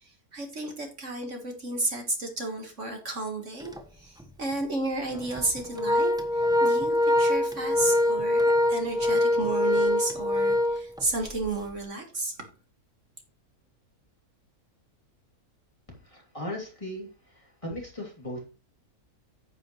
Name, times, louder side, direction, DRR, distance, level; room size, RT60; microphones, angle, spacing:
voice 1, 0.0-8.4 8.7-12.4, right 2 dB, 55° right, 3 dB, 1.9 m, -32 dB
Organ, 3.6-3.8 4.2-4.3 5.1-11.5, left 1 dB, 5° right, 0.7 m, -24 dB
voice 2, 15.9-18.5, left 1 dB, 20° left, -1 dB, 2.8 m, -38 dB
9.4 x 8.9 x 3.1 m, 0.32 s
omnidirectional pair, 1.6 m